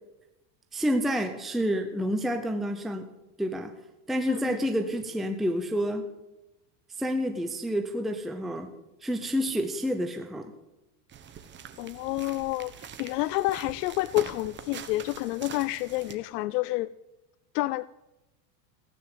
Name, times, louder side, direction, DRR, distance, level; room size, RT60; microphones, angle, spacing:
voice 1, 0.7-3.1 3.4-3.7 4.1-6.1 6.9-8.7 9.0-10.5, equal, ahead, 6 dB, 0.8 m, -29 dB
voice 2, 4.3-4.6 11.8-16.9 17.5-17.9, left 18 dB, 75° left, 18 dB, 0.6 m, -29 dB
sound 1, 11.1-16.2, right 8 dB, 25° right, 1.2 m, -44 dB
16.0 x 9.4 x 8.0 m, 0.97 s
supercardioid pair, 135°, 47 cm